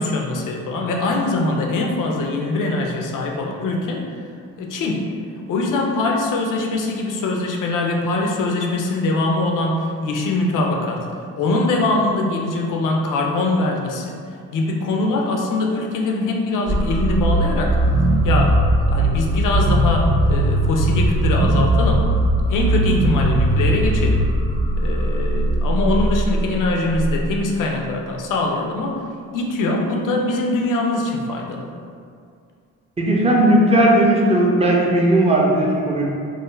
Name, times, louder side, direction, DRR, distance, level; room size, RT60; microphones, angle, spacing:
voice 1, 0.0-4.0 4.6-5.1 5.5-11.1 11.4-14.2 14.5-17.8 18.2-18.6 18.9-22.1 22.5-24.2 24.8-29.0 29.3-31.7, left 2 dB, 50° left, 1 dB, 0.5 m, -22 dB
sound 1, 16.7-27.5, right 1 dB, 50° right, 0.8 m, -19 dB
voice 2, 33.0-36.0, right 1 dB, 15° right, -3 dB, 0.6 m, -16 dB
2.4 x 2.0 x 3.0 m, 2.3 s
hypercardioid pair, 45°, 40 cm